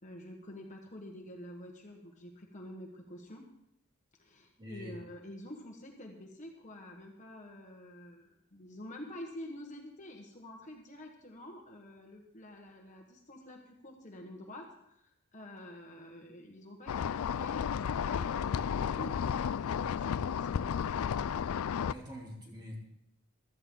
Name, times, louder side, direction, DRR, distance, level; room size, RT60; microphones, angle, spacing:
voice 1, 0.0-3.5 4.2-20.7, left 1 dB, 35° left, 1 dB, 1.4 m, -48 dB
voice 2, 4.6-5.0 21.9-22.8, left 1 dB, 20° right, -2 dB, 3.1 m, -45 dB
sound 1, 16.9-21.9, left 7 dB, 75° left, 0.4 m, -33 dB
16.0 x 13.0 x 3.8 m, 0.78 s
head